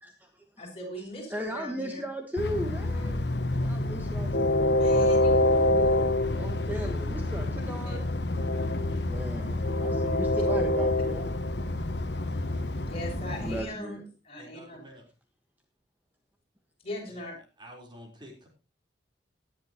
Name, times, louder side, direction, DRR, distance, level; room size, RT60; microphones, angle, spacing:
voice 1, 0.0-0.7 1.0-3.2 3.6-8.0 8.9-11.3 12.7-12.8 13.4-14.1, equal, 10° right, 3 dB, 1.4 m, -37 dB
voice 2, 0.6-2.1 4.7-5.3 7.6-8.0 11.0-11.1 11.4-11.5 12.8-14.8 16.8-17.4, left 1 dB, 35° left, -1 dB, 6.4 m, -40 dB
Train, 2.4-13.6, left 1 dB, 70° left, 1.2 m, -27 dB
voice 3, 14.4-15.0 17.1-17.3 17.6-18.5, equal, 25° right, 1 dB, 4.0 m, -49 dB
19.5 x 10.5 x 3.0 m, 0.31 s
head